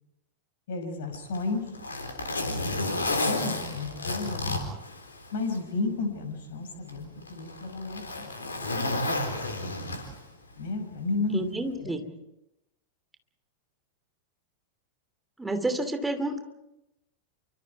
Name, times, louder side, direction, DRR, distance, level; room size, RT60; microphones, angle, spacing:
voice 1, 0.7-1.6 3.2-4.5 5.3-8.0 10.6-11.4 11.8-11.9, left 3 dB, 55° left, 5 dB, 6.0 m, -32 dB
Zipper (clothing), 1.1-5.6 6.0-6.1 6.9-10.4 11.5-11.7, left 2 dB, 75° left, 4.2 m, -31 dB
voice 2, 11.3-12.0 15.4-16.4, right 2 dB, 10° right, 8 dB, 2.9 m, -29 dB
28.5 x 25.0 x 4.7 m, 0.89 s
figure-of-eight pair, 90°, 0 cm